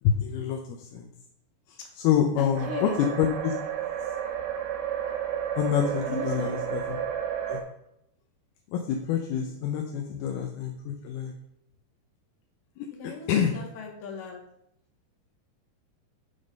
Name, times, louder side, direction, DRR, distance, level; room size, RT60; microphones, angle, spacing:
voice 1, 0.0-1.1 1.7-3.5 5.6-7.0 7.4-7.6 8.7-11.3 12.8-12.9 13.3-13.6, left 8 dB, 80° left, 3 dB, 2.4 m, -27 dB
voice 2, 2.4-3.0 6.1-6.6 10.1-10.2 13.0-14.4, left 3 dB, 60° left, 1 dB, 2.9 m, -37 dB
sound 1, 2.6-7.6, right 9 dB, 85° right, 3.2 m, -31 dB
11.0 x 3.9 x 5.2 m, 0.78 s
omnidirectional pair, 5.0 m